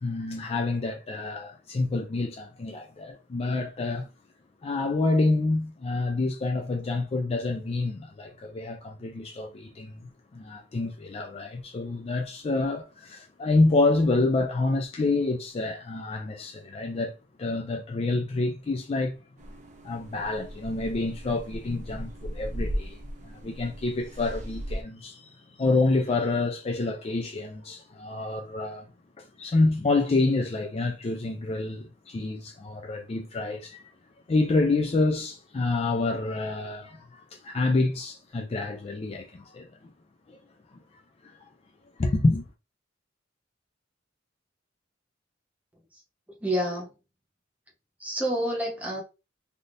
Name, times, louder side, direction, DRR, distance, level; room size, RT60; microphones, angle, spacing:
voice 1, 0.0-4.1 4.6-19.2 19.8-28.9 29.2-33.9 34.3-39.9 40.3-40.4 40.7-40.8 41.2-41.4 42.0-42.5, left 3 dB, 30° left, 0.4 m, -28 dB
sound 1, 19.4-24.8, equal, 40° right, 0.6 m, -37 dB
voice 2, 46.4-46.9 48.0-49.0, equal, 10° right, 0.9 m, -28 dB
3.5 x 2.6 x 2.5 m
head